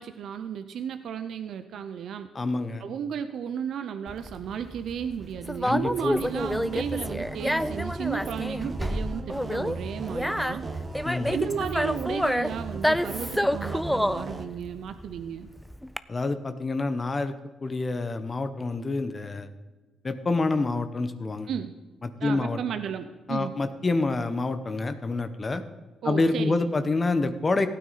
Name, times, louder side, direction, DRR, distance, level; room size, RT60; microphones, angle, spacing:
voice 1, 0.0-2.3 2.8-10.6 11.3-15.5 21.5-21.8 22.2-23.5 26.0-26.7, right 8 dB, 70° right, 9 dB, 0.6 m, -34 dB
voice 2, 2.3-2.8 5.6-6.2 11.0-11.3 16.1-17.3 17.6-19.5 20.0-21.5 22.0-22.6 23.3-25.6 26.0-27.7, left 3 dB, 30° left, 10 dB, 0.8 m, -27 dB
Conversation, 4.1-16.0, equal, 5° left, 0.4 m, -29 dB
sound 1, 6.1-14.4, right 3 dB, 30° right, 1.3 m, -37 dB
15.5 x 9.3 x 4.1 m, 1.3 s
cardioid pair, 90°, 0 cm